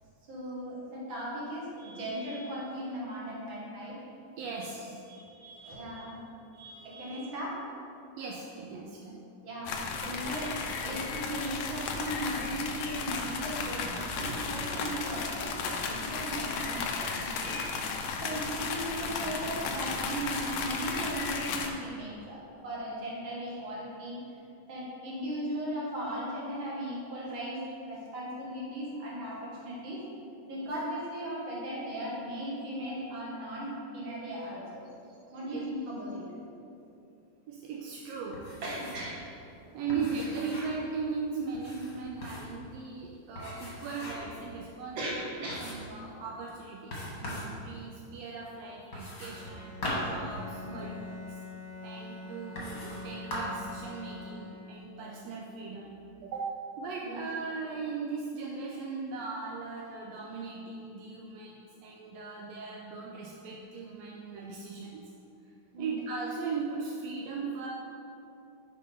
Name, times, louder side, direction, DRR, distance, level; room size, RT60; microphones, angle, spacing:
voice 1, 0.3-4.0 5.1-6.2 6.5-7.6 9.4-17.6 18.2-24.2 24.7-27.6 27.9-30.0 30.5-34.9 35.3-36.3 38.6-39.1 39.9-40.1 45.0-45.6 50.6-50.9 57.0-57.2 65.7-66.0, right 1 dB, 45° right, -6 dB, 2.2 m, -37 dB
voice 2, 4.4-5.0 6.4-6.5 8.2-9.2 14.2-14.7 18.3-18.4 35.4-35.6 37.5-38.4 39.6-50.9 51.3-51.4 51.8-55.9 56.2-56.5 56.8-65.1 65.8-67.7, right 4 dB, 80° right, -1 dB, 1.5 m, -38 dB
sound 1, 9.7-21.7, left 4 dB, 85° left, 1.4 m, -34 dB
sound 2, 38.3-39.1 39.4-39.5 39.9-40.8 41.5-42.6 43.3-44.4 44.8-44.9 45.5-46.0 46.9-47.5 48.9-50.9 51.7-51.8 52.5-53.0 53.3-53.7, left 1 dB, 35° left, 1.5 m, -39 dB
Bowed string instrument, 49.3-55.1, left 3 dB, 55° left, 1.1 m, -45 dB
6.8 x 4.8 x 5.5 m, 2.6 s
omnidirectional pair, 3.5 m